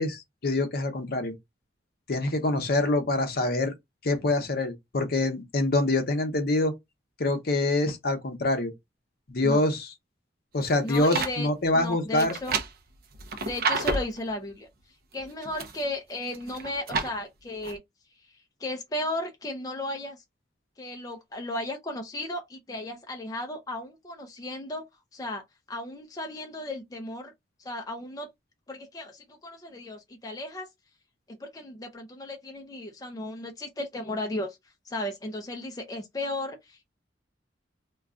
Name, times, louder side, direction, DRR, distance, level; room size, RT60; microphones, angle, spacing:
voice 1, 0.0-1.3 2.1-3.7 4.0-6.7 7.2-8.7 9.3-9.9 10.5-12.4, left 2 dB, 55° left, 0.7 m, -25 dB
sound 1, 10.6-11.4 12.2-14.2 15.2-15.8 16.3-17.2 17.6-17.8, right 4 dB, 55° right, 0.5 m, -30 dB
voice 2, 10.8-11.5 11.7-12.6 13.4-14.7 15.1-17.8 18.2-18.3 18.6-20.2 20.8-24.8 25.1-27.3 27.6-28.3 28.7-30.7 31.3-34.6 34.8-36.9, left 1 dB, 20° left, 0.4 m, -35 dB
2.3 x 2.2 x 3.6 m
head